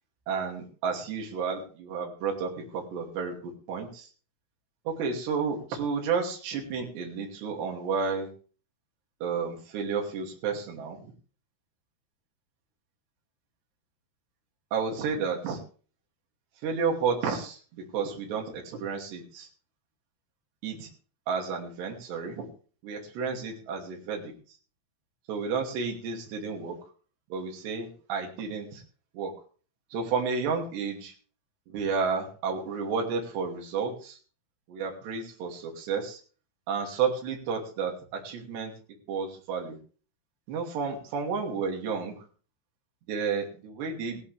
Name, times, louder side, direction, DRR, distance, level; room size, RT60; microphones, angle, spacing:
voice 1, 0.3-4.1 4.9-8.3 9.2-11.1 14.7-15.6 16.6-19.5 20.6-20.9 21.3-22.5 22.8-24.3 25.3-26.8 27.3-28.8 29.1-29.3 29.9-31.1 31.7-34.2 34.7-36.2 36.7-38.8 39.1-39.8 40.5-42.1 43.1-44.2, right 5 dB, 65° right, 1 dB, 4.7 m, -31 dB
17.5 x 13.0 x 3.4 m, 0.38 s
omnidirectional pair, 5.4 m